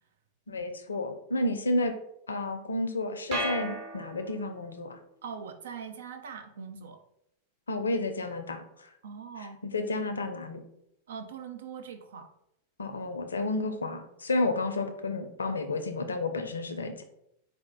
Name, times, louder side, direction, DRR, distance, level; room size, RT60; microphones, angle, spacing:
voice 1, 0.5-2.0 2.3-5.0 7.7-8.9 9.6-10.6 12.8-17.0, left 2 dB, 75° left, 7 dB, 0.5 m, -31 dB
sound 1, 3.3-4.7, right 1 dB, 45° right, 1.3 m, -35 dB
voice 2, 5.2-7.0 9.0-9.6 11.1-12.3, right 6 dB, 60° right, 7 dB, 0.4 m, -41 dB
4.3 x 2.4 x 3.6 m, 0.78 s
figure-of-eight pair, 90°, 0 cm